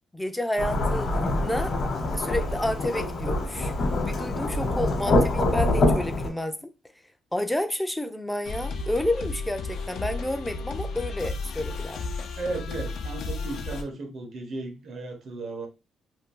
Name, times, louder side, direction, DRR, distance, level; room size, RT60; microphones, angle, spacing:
voice 1, 0.1-1.7 2.1-6.7 7.3-12.0, left 1 dB, 5° left, 0.4 m, -30 dB
Thunderstorm / Rain, 0.6-6.3, left 2 dB, 50° left, 1.0 m, -25 dB
sound 1, 8.5-13.8, left 3 dB, 75° left, 0.5 m, -33 dB
voice 2, 12.4-15.7, right 2 dB, 60° right, 0.8 m, -35 dB
2.6 x 2.3 x 3.6 m
cardioid pair, 90°, 0 cm